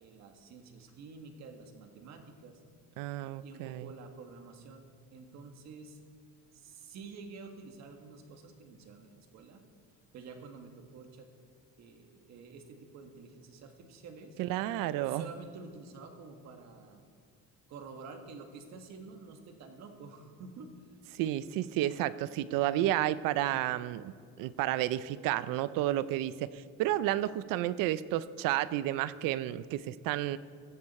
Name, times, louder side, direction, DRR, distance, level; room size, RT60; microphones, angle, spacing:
voice 1, 0.0-2.6 3.2-6.0 6.5-9.6 10.1-11.3 11.8-14.4 15.0-17.0 17.7-21.0, right 4 dB, 55° right, 5 dB, 1.7 m, -49 dB
voice 2, 3.0-3.9 14.4-15.2 21.1-30.4, right 14 dB, 80° right, 16 dB, 0.6 m, -31 dB
16.5 x 13.5 x 4.3 m, 2.3 s
cardioid pair, 160°, 33 cm